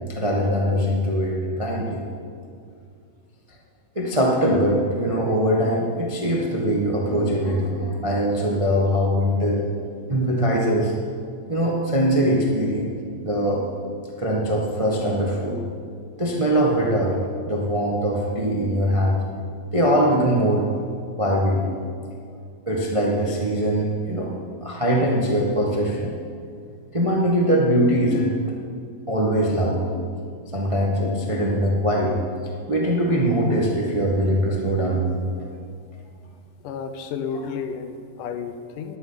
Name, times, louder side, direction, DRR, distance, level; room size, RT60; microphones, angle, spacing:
voice 1, 0.1-2.0 3.9-9.6 10.1-10.9 11.5-12.9 13.2-13.6 14.2-15.6 16.2-17.2 17.5-19.2 19.7-20.6 21.2-21.6 22.0-22.1 22.7-24.3 24.6-26.1 26.9-28.3 29.1-29.8 30.5-32.2 32.7-35.0 35.3-35.4, equal, 25° right, -2 dB, 0.7 m, -22 dB
voice 2, 36.6-39.0, left 6 dB, 90° left, 8 dB, 2.5 m, -32 dB
11.0 x 9.0 x 9.8 m, 2.2 s
omnidirectional pair, 3.6 m